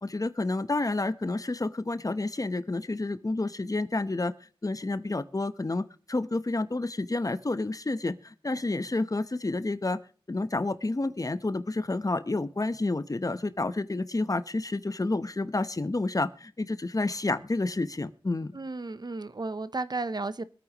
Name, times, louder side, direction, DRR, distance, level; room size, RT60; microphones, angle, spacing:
voice 1, 0.0-4.3 4.6-10.0 10.3-18.5, left 2 dB, 40° left, 13 dB, 1.0 m, -29 dB
voice 2, 18.5-20.4, right 3 dB, 50° right, 15 dB, 0.8 m, -33 dB
24.5 x 9.1 x 3.0 m, 0.39 s
wide cardioid pair, 70°, 9 cm